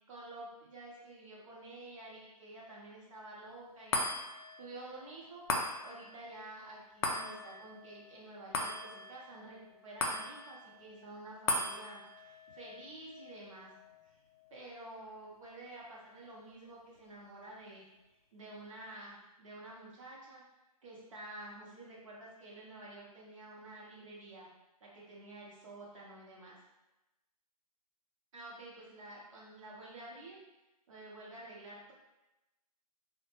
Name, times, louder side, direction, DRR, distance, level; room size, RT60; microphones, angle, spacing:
voice 1, 0.1-13.7 14.5-17.9 18.3-20.4 20.8-24.5 24.8-26.5 28.3-30.4 30.9-31.9, right 2 dB, 55° right, -4 dB, 0.9 m, -50 dB
sound 1, 3.9-16.5 16.9-17.0, left 2 dB, 40° left, 0.4 m, -40 dB
2.2 x 2.1 x 3.0 m, 1.0 s
hypercardioid pair, 145°, 20 cm